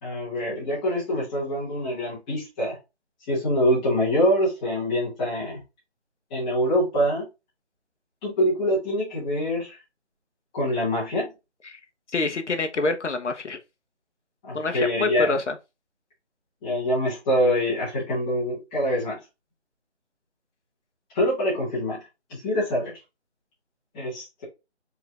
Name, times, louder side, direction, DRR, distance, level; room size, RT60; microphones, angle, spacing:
voice 1, 0.0-2.8 3.3-5.6 6.3-7.3 8.2-9.8 10.5-11.3 14.4-15.4 16.6-19.2 21.1-23.0 23.9-24.4, equal, 5° left, 1.1 m, -25 dB
voice 2, 12.1-13.6 14.5-15.5, left 3 dB, 80° left, 1.1 m, -26 dB
4.9 x 3.8 x 2.4 m
figure-of-eight pair, 170°, 35 cm